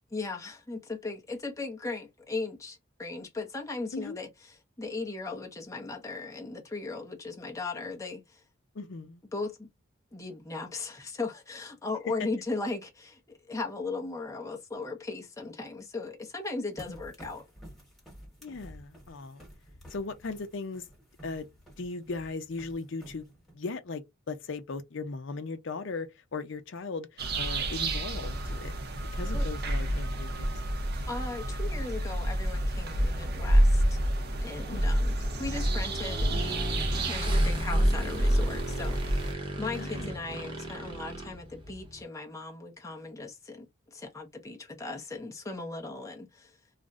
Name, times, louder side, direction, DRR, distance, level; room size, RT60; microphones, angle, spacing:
voice 1, 0.1-8.4 9.3-9.7 10.1-17.4 29.3-29.5 31.1-34.0 34.4-36.6 37.1-39.3 39.6-46.6, left 3 dB, 15° left, 0.6 m, -37 dB
voice 2, 8.7-9.2 16.9-17.0 18.4-19.4 19.9-20.8 21.2-21.5 21.8-23.3 23.5-28.7 29.1-30.5 34.7-35.0 39.7-40.1, left 3 dB, 65° left, 0.5 m, -38 dB
sound 1, 16.8-23.5, equal, ahead, 1.2 m, -51 dB
sound 2, 27.2-39.3, right 1 dB, 55° right, 0.6 m, -28 dB
Motorcycle / Engine, 32.3-42.0, right 1 dB, 25° right, 0.8 m, -38 dB
2.4 x 2.0 x 3.5 m
head